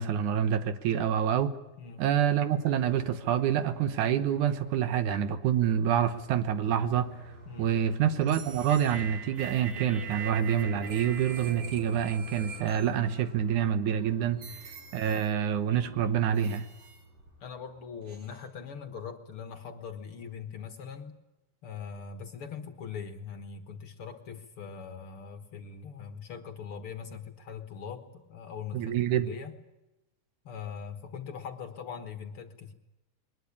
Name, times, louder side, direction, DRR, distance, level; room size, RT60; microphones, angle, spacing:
voice 1, 0.0-1.6 2.0-7.1 7.6-14.4 14.9-16.7 28.7-29.3, right 9 dB, 75° right, 11 dB, 2.5 m, -27 dB
sound 1, 1.9-18.7, left 1 dB, 30° right, 7.2 m, -51 dB
sound 2, 8.2-13.4 14.0-14.1 14.4-15.3 15.7-17.4 18.1-18.4, right 6 dB, 55° right, 3.7 m, -43 dB
voice 2, 17.4-21.1 21.6-29.5 30.4-32.7, left 6 dB, 55° left, 7 dB, 1.9 m, -41 dB
22.0 x 20.5 x 8.6 m, 1.0 s
omnidirectional pair, 3.6 m